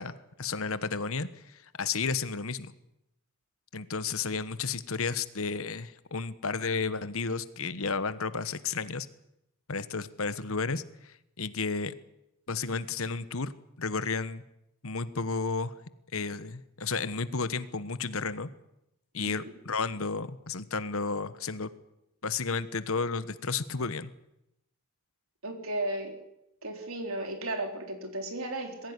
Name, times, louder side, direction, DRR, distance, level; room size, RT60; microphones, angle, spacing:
voice 1, 0.0-2.7 3.7-9.1 9.7-11.9 12.5-13.5 13.8-14.4 14.8-15.7 16.1-18.5 19.1-21.7 22.2-24.1, left 4 dB, 70° left, 14 dB, 1.2 m, -32 dB
voice 2, 19.2-19.5 25.4-26.2 26.6-28.9, right 1 dB, 70° right, 5 dB, 3.9 m, -35 dB
22.0 x 15.5 x 9.8 m, 0.84 s
head